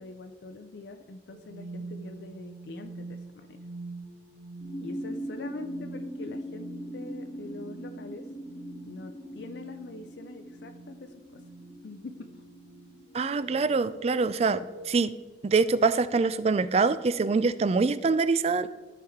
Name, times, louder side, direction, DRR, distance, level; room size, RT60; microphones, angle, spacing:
voice 1, 0.0-3.6 4.8-8.3 8.8-11.4 11.8-12.4, left 2 dB, 80° left, 6 dB, 0.5 m, -44 dB
sound 1, 1.3-14.9, right 2 dB, 80° right, 0.7 m, -46 dB
sound 2, 4.6-14.4, equal, 30° left, 1.2 m, -41 dB
voice 2, 13.1-15.2 15.4-18.7, right 4 dB, 35° right, 15 dB, 0.3 m, -24 dB
13.5 x 4.6 x 3.6 m, 1.3 s
head